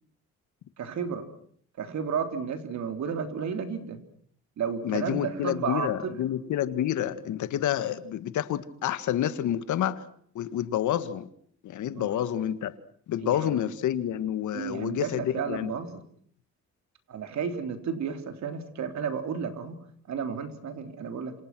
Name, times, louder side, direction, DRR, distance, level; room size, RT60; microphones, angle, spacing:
voice 1, 0.8-1.3 1.8-4.0 4.6-6.2 11.9-12.2 13.2-13.6 14.5-16.0 17.1-19.8 20.1-21.3, right 6 dB, 65° right, 7 dB, 3.9 m, -32 dB
voice 2, 4.8-10.0 10.4-11.3 11.6-12.8 13.1-15.7, left 11 dB, 75° left, 12 dB, 1.8 m, -29 dB
28.0 x 27.0 x 6.2 m, 0.62 s
cardioid pair, 90°, 30 cm